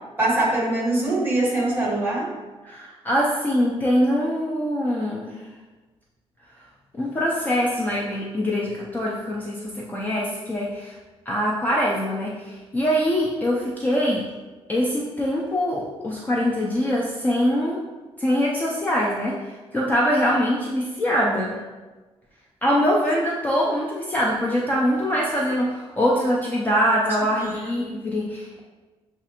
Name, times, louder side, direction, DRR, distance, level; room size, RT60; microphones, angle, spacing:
voice 1, 0.2-2.3 27.4-28.0, right 2 dB, 20° right, -4 dB, 1.1 m, -23 dB
voice 2, 2.6-5.4 7.0-10.9 11.3-14.2 14.7-17.8 18.2-21.6 22.6-28.6, equal, 15° left, -4 dB, 0.4 m, -23 dB
6.9 x 2.4 x 2.8 m, 1.3 s
wide cardioid pair, 180°, 10 cm